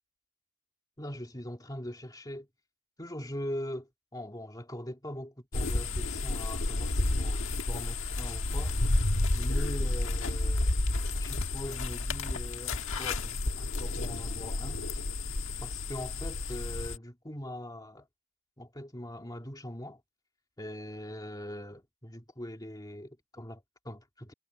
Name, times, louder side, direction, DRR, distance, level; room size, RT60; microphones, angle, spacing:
voice 1, 1.0-2.5 3.0-8.8 9.3-10.8 11.1-15.0 15.6-18.1 18.6-20.0 20.6-24.3, equal, 15° left, 2.7 m, -41 dB
sound 1, 5.5-17.0, left 2 dB, 60° left, 1.5 m, -31 dB
head